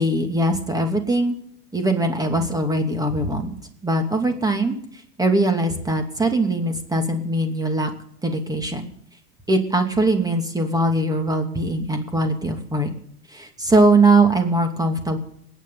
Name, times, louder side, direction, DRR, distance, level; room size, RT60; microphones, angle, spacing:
voice 1, 0.0-1.3 1.7-3.5 3.8-4.8 5.2-7.9 8.2-8.9 9.5-12.9 13.3-15.2, right 2 dB, 10° right, 5 dB, 2.5 m, -21 dB
30.0 x 10.0 x 4.0 m, 0.72 s
hypercardioid pair, 110°, 47 cm